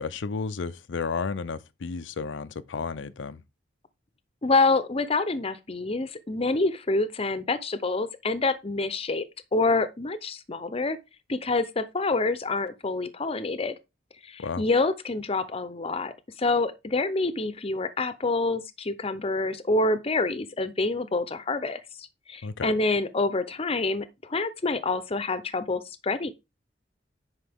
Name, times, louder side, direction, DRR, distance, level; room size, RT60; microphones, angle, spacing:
voice 1, 0.0-3.4 14.4-14.6 22.4-22.7, left 4 dB, 90° left, 0.5 m, -32 dB
voice 2, 4.4-9.2 9.5-11.0 11.3-13.8 14.2-16.1 16.4-26.3, left 3 dB, 30° left, 0.7 m, -27 dB
9.6 x 5.2 x 3.6 m
head